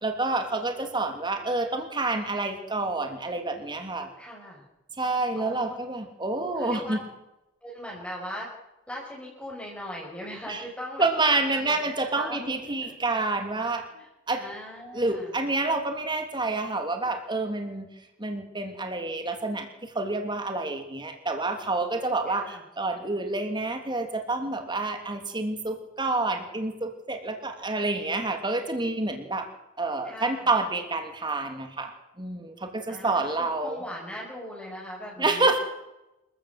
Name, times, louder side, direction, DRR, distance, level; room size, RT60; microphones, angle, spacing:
voice 1, 0.0-4.1 5.0-7.0 10.5-10.6 11.0-13.8 14.3-14.4 14.9-17.9 18.2-29.5 29.8-33.8 35.2-35.6, right 2 dB, 25° right, 5 dB, 3.0 m, -28 dB
voice 2, 4.2-4.6 5.4-5.7 6.6-7.0 7.6-8.5 8.9-11.8 12.1-12.9 13.9-14.1 14.4-15.3 22.3-22.6 30.0-30.5 32.9-35.5, equal, 5° left, -3 dB, 5.5 m, -39 dB
27.0 x 15.5 x 8.1 m, 0.93 s
head